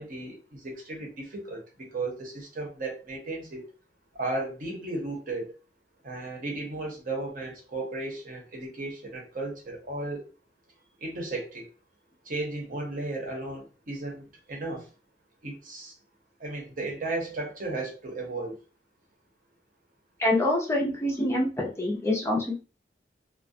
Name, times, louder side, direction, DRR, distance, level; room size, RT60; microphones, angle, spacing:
voice 1, 0.0-3.6 4.1-5.5 6.0-10.3 11.0-11.7 12.2-14.9 15.4-15.9 16.4-18.6, right 2 dB, 50° right, 0 dB, 0.8 m, -35 dB
voice 2, 20.2-22.6, left 1 dB, 15° left, -1 dB, 0.5 m, -26 dB
2.3 x 2.1 x 2.6 m, 0.33 s
head